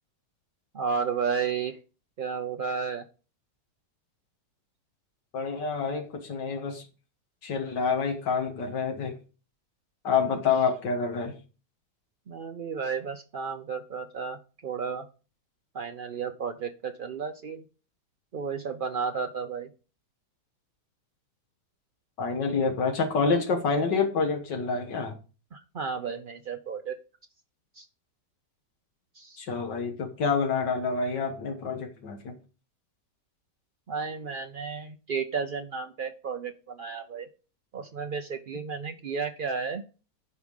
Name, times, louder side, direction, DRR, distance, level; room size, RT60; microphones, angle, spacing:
voice 1, 0.7-1.8 2.2-3.0 12.3-15.1 15.7-17.6 18.3-19.7 25.5-27.0 27.8-27.9 29.1-29.4 33.9-37.3 37.7-39.8, right 5 dB, 65° right, 5 dB, 0.5 m, -33 dB
voice 2, 5.3-6.8 7.4-9.1 10.0-11.4 22.2-25.2 29.4-32.4, left 5 dB, 85° left, 3 dB, 2.0 m, -27 dB
11.0 x 4.9 x 5.3 m, 0.34 s
omnidirectional pair, 1.8 m